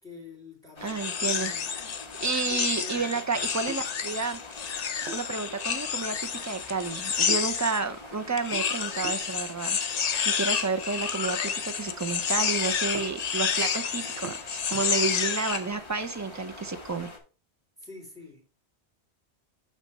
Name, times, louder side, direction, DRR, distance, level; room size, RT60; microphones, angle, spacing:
voice 1, 0.0-1.7 2.5-3.4 17.8-18.4, left 3 dB, 5° left, 0 dB, 2.3 m, -46 dB
sound 1, 0.8-17.2, left 2 dB, 25° left, 1.2 m, -45 dB
voice 2, 0.8-1.5 2.2-4.4 5.1-9.8 10.2-17.1, right 4 dB, 25° right, 8 dB, 0.4 m, -31 dB
sound 2, 0.9-7.8 8.4-15.6, left 7 dB, 50° left, 0.6 m, -30 dB
sound 3, 2.0-16.5, right 5 dB, 75° right, 1.0 m, -49 dB
8.7 x 3.2 x 5.3 m, 0.36 s
omnidirectional pair, 1.1 m